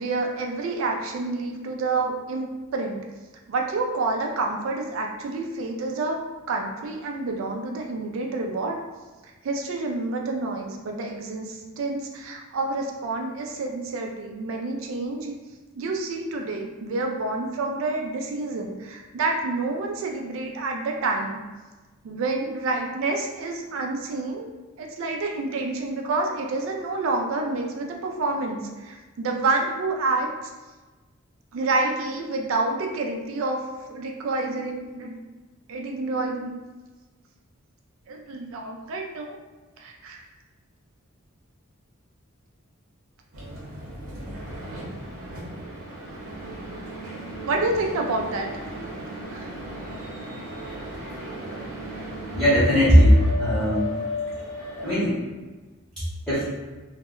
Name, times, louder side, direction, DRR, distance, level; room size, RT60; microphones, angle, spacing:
voice 1, 0.0-3.0 3.5-6.2 6.5-8.8 9.4-15.3 15.8-21.4 22.0-24.5 24.8-30.3 31.5-33.6 33.9-35.2 35.7-36.5 38.1-39.4 39.8-40.2 47.4-48.5 49.3-49.5, right 3 dB, 70° right, 2 dB, 0.3 m, -28 dB
sound 1, 43.3-54.9, equal, 90° right, 0.7 m, -35 dB
voice 2, 52.3-53.9 54.8-55.1 56.3-56.5, equal, ahead, -12 dB, 0.7 m, -18 dB
2.1 x 2.1 x 3.6 m, 1.3 s
head